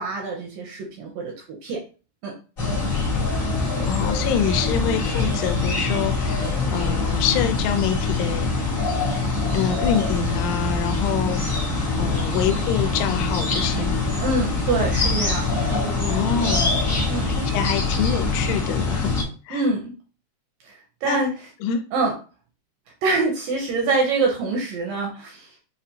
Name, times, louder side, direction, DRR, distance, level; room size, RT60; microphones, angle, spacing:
voice 1, 0.0-1.8 2.2-2.3 14.2-16.5 17.1-17.3 19.5-19.9 20.6-21.5 21.9-22.1 23.0-25.5, right 3 dB, 75° right, 0 dB, 2.1 m, -25 dB
sound 1, 2.6-19.2, left 3 dB, 45° left, 1.0 m, -24 dB
voice 2, 3.8-8.8 9.5-11.4 12.0-14.1 16.0-16.7 17.3-19.1 19.5-19.6 21.0-21.2 21.6-21.8, left 8 dB, 90° left, 8 dB, 2.7 m, -26 dB
6.4 x 2.5 x 2.7 m, 0.35 s
omnidirectional pair, 4.7 m